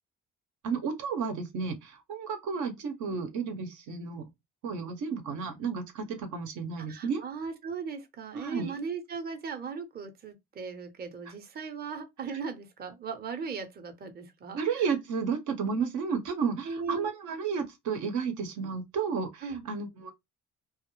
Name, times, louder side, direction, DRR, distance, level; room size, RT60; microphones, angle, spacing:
voice 1, 0.6-4.2 4.6-7.2 8.3-8.7 14.5-20.1, right 5 dB, 80° right, 0.7 m, -32 dB
voice 2, 6.8-14.6 16.6-17.1 19.4-19.7, right 5 dB, 30° right, 0.6 m, -38 dB
2.3 x 2.0 x 2.9 m
cardioid pair, 90°, 30 cm